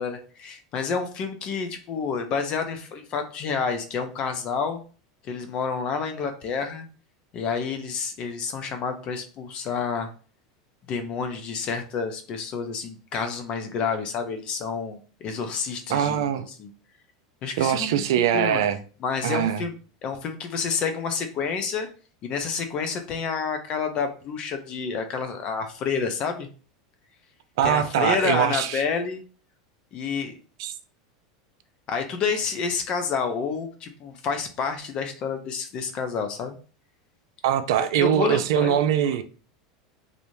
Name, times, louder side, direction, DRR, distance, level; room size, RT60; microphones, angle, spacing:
voice 1, 0.0-4.8 5.2-6.9 7.3-10.1 10.9-16.3 16.6-16.7 17.4-18.0 18.3-18.6 19.0-19.7 20.0-21.9 22.2-26.5 27.6-29.2 29.9-30.3 31.9-36.6 37.8-38.8 39.0-39.2, left 5 dB, 45° left, 0.5 m, -29 dB
voice 2, 15.9-16.5 17.6-18.8 19.2-19.6 27.6-28.8 30.6-30.7 37.4-39.2, right 10 dB, 70° right, 0.3 m, -22 dB
2.6 x 2.0 x 3.0 m
hypercardioid pair, 95°, 2 cm